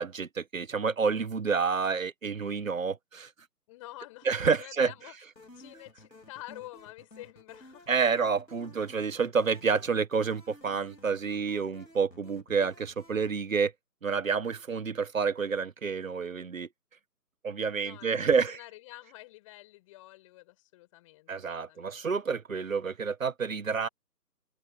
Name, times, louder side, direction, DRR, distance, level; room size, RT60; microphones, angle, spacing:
voice 1, 0.0-3.3 4.2-4.9 7.9-13.7 14.0-16.7 17.4-18.6 21.3-23.9, right 5 dB, 50° right, 1.6 m, -29 dB
voice 2, 3.7-5.1 5.5-7.9 17.8-22.1, left 18 dB, 20° left, 7.6 m, -48 dB
sound 1, 5.4-13.3, left 1 dB, 85° left, 5.1 m, -54 dB
figure-of-eight pair, 150°, 49 cm